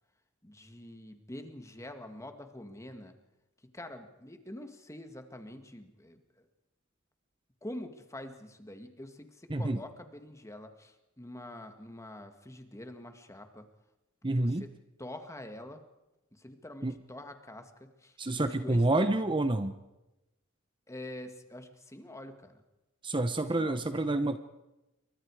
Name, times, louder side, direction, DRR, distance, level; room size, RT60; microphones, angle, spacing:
voice 1, 0.4-3.2 3.6-6.5 7.6-13.7 14.3-15.8 16.3-19.1 20.9-22.6 23.5-23.8, left 1 dB, 15° left, 7 dB, 2.0 m, -46 dB
voice 2, 14.2-14.6 16.8-16.9 18.2-19.7 23.0-24.4, right 2 dB, 25° right, 10 dB, 0.9 m, -28 dB
28.5 x 24.0 x 4.9 m, 0.98 s
head